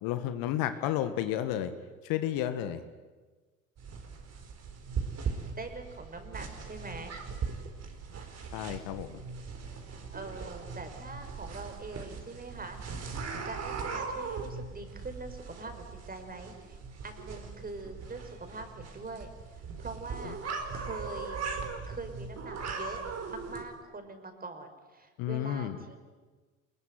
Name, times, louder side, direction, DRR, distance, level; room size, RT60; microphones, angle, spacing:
voice 1, 0.0-1.7 2.0-2.8 8.5-9.2 25.2-25.8, left 11 dB, 55° left, 10 dB, 1.9 m, -31 dB
sound 1, 3.8-23.6, right 5 dB, 40° right, 4.7 m, -39 dB
voice 2, 5.6-7.2 10.1-12.8 13.4-16.8 17.0-19.3 19.8-20.4 20.7-21.4 21.9-23.0 23.3-26.0, right 3 dB, 20° right, 7 dB, 5.2 m, -43 dB
27.0 x 21.5 x 9.6 m, 1.3 s
hypercardioid pair, 70°, 41 cm